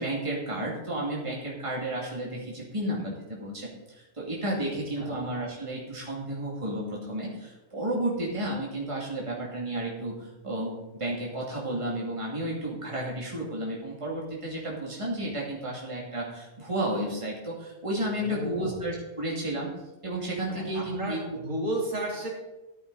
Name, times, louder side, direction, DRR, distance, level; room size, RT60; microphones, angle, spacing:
voice 1, 0.0-19.7 20.0-21.2, right 1 dB, 25° right, -4 dB, 2.7 m, -32 dB
voice 2, 18.1-18.8 20.5-22.3, right 1 dB, 75° right, -4 dB, 3.8 m, -33 dB
15.0 x 9.0 x 4.1 m, 1.0 s
omnidirectional pair, 1.3 m